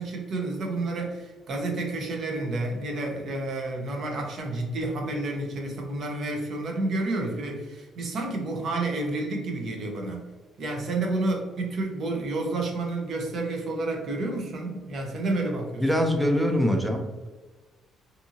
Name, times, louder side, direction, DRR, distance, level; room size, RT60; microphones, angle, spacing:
voice 1, 0.0-10.2 10.6-15.9, right 2 dB, 45° right, 1 dB, 0.6 m, -30 dB
voice 2, 15.8-17.3, equal, 5° right, 3 dB, 0.4 m, -24 dB
2.7 x 2.6 x 2.6 m, 1.3 s
cardioid pair, 160°, 0 cm